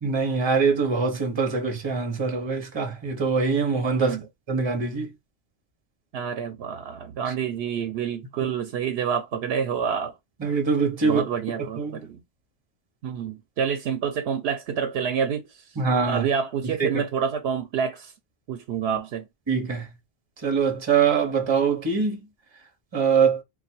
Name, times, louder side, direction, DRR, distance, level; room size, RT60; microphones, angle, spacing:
voice 1, 0.0-4.2 4.5-5.1 7.3-7.4 10.4-11.2 11.8-12.1 15.8-16.2 16.6-17.0 19.5-19.9 20.4-22.2 22.9-23.4, right 5 dB, 30° right, 0.9 m, -23 dB
voice 2, 6.1-10.1 11.0-12.2 13.0-15.8 16.1-18.1 18.5-19.3, right 7 dB, 90° right, 0.8 m, -28 dB
3.2 x 2.2 x 4.3 m
omnidirectional pair, 1.0 m